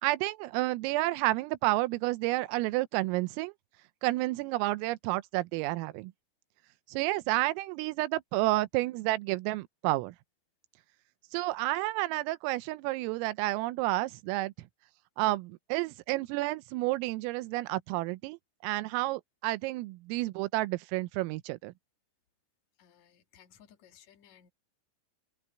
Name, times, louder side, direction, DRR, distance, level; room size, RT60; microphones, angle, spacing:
voice 1, 0.0-3.5 4.0-6.1 6.9-10.2 11.3-14.5 15.2-18.4 18.6-21.7, right 19 dB, 90° right, 3.5 m, -30 dB
voice 2, 22.8-24.5, left 9 dB, 50° left, 2.3 m, -59 dB
open air
omnidirectional pair, 5.8 m